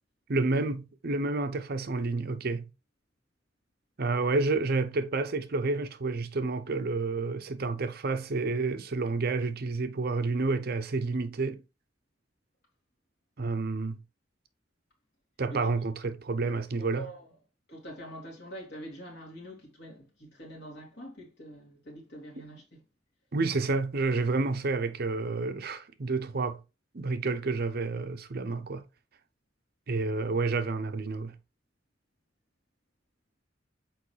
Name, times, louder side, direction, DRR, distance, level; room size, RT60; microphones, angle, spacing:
voice 1, 0.3-2.7 4.0-11.6 13.4-14.0 15.4-17.1 23.3-26.6 26.9-28.8 29.9-31.4, right 3 dB, 55° right, 0.7 m, -29 dB
voice 2, 16.8-17.3 17.7-22.8, right 1 dB, 60° left, 2.6 m, -45 dB
6.3 x 4.6 x 3.2 m
head